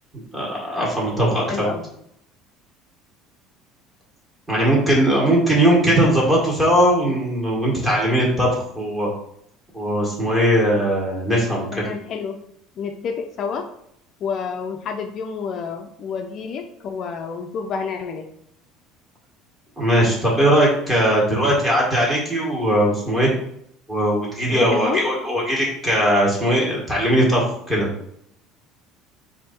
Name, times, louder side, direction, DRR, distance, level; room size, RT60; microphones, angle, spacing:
voice 1, 0.1-1.7 4.5-9.1 9.7-11.9 19.8-23.3 23.9-27.9, right 1 dB, 15° right, -4 dB, 1.9 m, -19 dB
voice 2, 1.3-1.9 11.7-12.4 12.8-13.7 14.2-18.3 24.5-25.0, left 6 dB, 45° left, 4 dB, 0.4 m, -29 dB
4.4 x 2.7 x 4.3 m, 0.72 s
cardioid pair, 130°, 0 cm